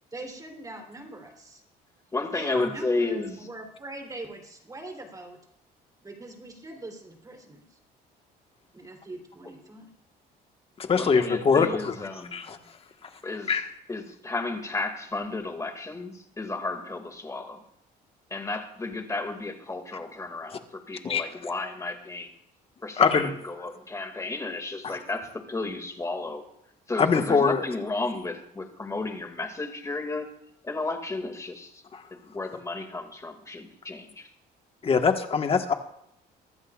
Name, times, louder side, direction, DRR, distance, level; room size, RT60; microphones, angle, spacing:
voice 1, 0.1-1.6 2.3-5.4 6.0-7.8 8.7-9.9, right 2 dB, 20° right, 3 dB, 3.4 m, -42 dB
voice 2, 2.1-3.4 10.9-12.4 13.2-13.5 13.9-17.6 18.3-22.3 22.8-26.4 26.9-30.3 30.6-31.8 32.1-34.3, left 3 dB, 20° left, 5 dB, 2.2 m, -33 dB
voice 3, 10.8-12.6 13.5-13.7 20.5-20.6 21.0-21.3 23.0-23.3 24.8-25.0 27.0-27.7 31.9-32.0 34.8-35.7, left 5 dB, 35° left, 6 dB, 1.4 m, -23 dB
23.5 x 12.5 x 2.4 m, 0.76 s
cardioid pair, 110°, 17 cm